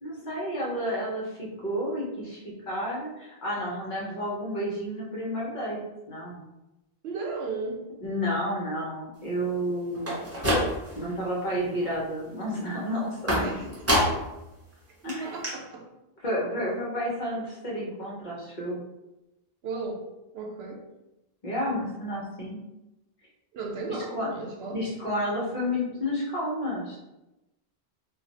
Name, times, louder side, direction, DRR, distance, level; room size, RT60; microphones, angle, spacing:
voice 1, 0.0-5.8 6.1-6.4 8.0-10.2 10.9-13.6 15.0-15.4 16.2-18.8 21.4-22.6 24.1-24.3 24.7-27.0, equal, 50° left, -4 dB, 1.0 m, -31 dB
voice 2, 7.0-7.8 13.4-13.7 15.0-15.9 19.6-20.0 20.3-20.9 23.5-24.8, right 3 dB, 85° right, 2 dB, 0.8 m, -35 dB
sound 1, 9.9-11.1 11.5-12.0 13.3-14.4 14.7-14.8 15.1-15.2 15.4-15.5, equal, 15° right, 0.7 m, -26 dB
2.4 x 2.3 x 3.9 m, 0.96 s
omnidirectional pair, 1.0 m